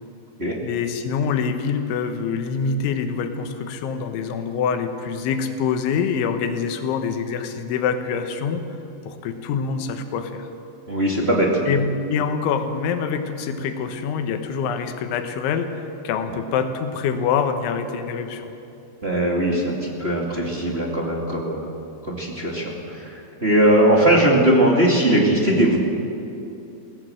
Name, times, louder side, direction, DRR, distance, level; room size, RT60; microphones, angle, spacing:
voice 1, 0.6-8.6 9.1-10.5 11.7-18.5, left 6 dB, 90° left, 7 dB, 3.6 m, -25 dB
voice 2, 10.9-11.5 19.0-21.7 22.0-25.8, right 1 dB, 25° right, -2 dB, 1.3 m, -19 dB
22.0 x 17.5 x 7.8 m, 2.8 s
omnidirectional pair, 5.2 m